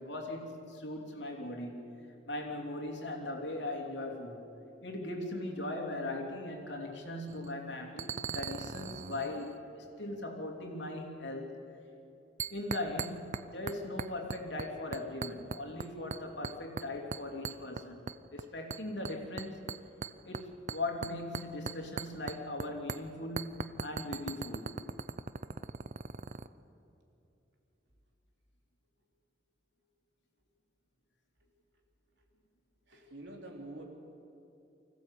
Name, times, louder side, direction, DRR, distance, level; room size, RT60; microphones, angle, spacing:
voice 1, 0.0-1.9 2.3-4.4 4.8-11.5 12.5-19.7 20.2-24.7, left 2 dB, 70° left, 1 dB, 3.0 m, -39 dB
sound 1, 7.3-7.5 8.0-9.6 12.4-13.4 13.7-14.7 14.9-15.9 16.1-16.9 17.1-18.4 18.7-22.6 22.9-23.0 23.4-26.5, right 5 dB, 40° right, 0.5 m, -39 dB
voice 2, 32.9-33.8, right 1 dB, 70° right, 1 dB, 3.6 m, -47 dB
24.5 x 16.0 x 8.3 m, 2.8 s
head